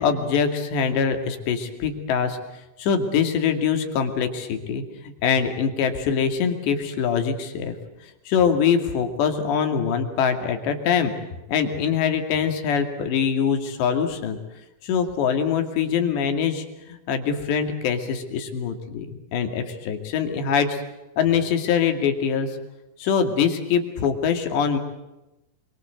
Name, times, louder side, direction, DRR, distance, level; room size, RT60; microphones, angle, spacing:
voice 1, 0.0-2.4 2.8-4.8 5.2-7.7 8.3-11.1 11.5-14.4 14.8-20.8 21.2-22.5 23.0-24.8, left 7 dB, 85° left, 6 dB, 4.7 m, -23 dB
27.0 x 24.0 x 8.0 m, 0.97 s
omnidirectional pair, 4.9 m